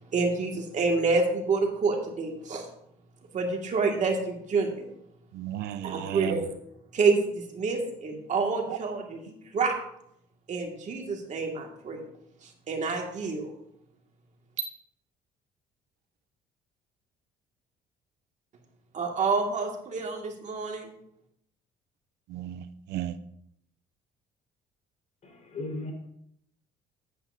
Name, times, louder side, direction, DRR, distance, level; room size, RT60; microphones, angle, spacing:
voice 1, 0.1-2.7 3.3-4.9 5.8-6.5 6.9-9.2 9.5-9.7 10.5-12.0 12.4-13.5 18.9-20.9, right 4 dB, 45° right, 2 dB, 2.0 m, -28 dB
voice 2, 5.3-6.4 8.7-8.8 22.3-23.2, right 11 dB, 80° right, 14 dB, 0.6 m, -34 dB
voice 3, 25.2-25.9, left 2 dB, 45° left, 0 dB, 4.4 m, -36 dB
14.5 x 8.8 x 2.7 m, 0.75 s
cardioid pair, 110°, 17 cm